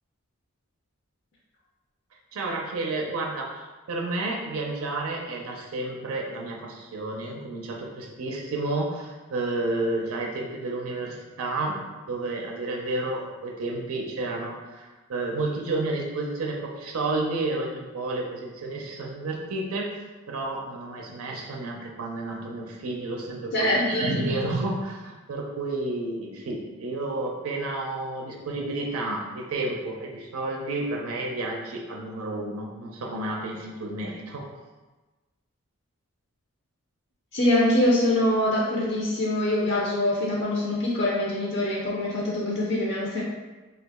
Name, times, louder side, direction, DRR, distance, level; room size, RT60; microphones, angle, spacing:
voice 1, 2.3-11.8 12.1-19.9 20.3-34.5, right 2 dB, 85° right, -1 dB, 0.5 m, -31 dB
voice 2, 23.5-24.1 37.3-43.2, left 1 dB, 50° left, -5 dB, 0.5 m, -24 dB
2.9 x 2.3 x 3.4 m, 1.2 s
head